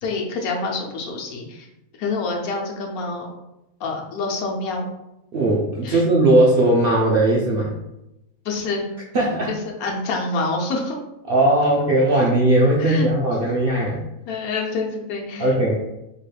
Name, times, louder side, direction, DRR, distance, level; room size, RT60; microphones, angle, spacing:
voice 1, 0.0-1.7 2.0-3.3 3.8-4.9 5.8-6.0 8.4-8.9 9.5-11.0 12.8-13.1 14.3-15.5, left 3 dB, 80° left, 0 dB, 1.2 m, -27 dB
voice 2, 5.3-7.7 9.1-9.5 11.3-14.0 15.4-15.7, right 1 dB, 65° right, -3 dB, 0.5 m, -18 dB
3.9 x 2.2 x 3.2 m, 0.88 s
omnidirectional pair, 1.5 m